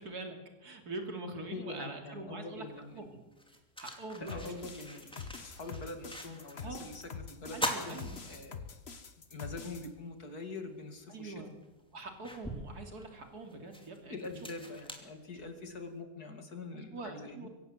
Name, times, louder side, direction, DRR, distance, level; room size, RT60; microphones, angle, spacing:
voice 1, 0.0-2.6 2.9-3.2 3.8-4.6 6.6-6.9 7.5-8.2 11.1-11.5 11.9-14.3 16.7-17.5, right 3 dB, 55° right, 4 dB, 3.4 m, -44 dB
voice 2, 1.5-3.1 4.3-5.1 5.4-8.7 9.3-11.4 14.1-17.5, left 3 dB, 55° left, 6 dB, 2.9 m, -44 dB
sound 1, 2.7-2.8 3.3-6.7 7.0-7.1 7.5-9.0 9.4-9.5 11.0-11.1 11.6-15.8, equal, 5° left, 2.6 m, -42 dB
sound 2, 4.3-9.9, left 5 dB, 35° left, 1.5 m, -45 dB
24.0 x 16.0 x 8.0 m, 1.1 s
omnidirectional pair, 2.0 m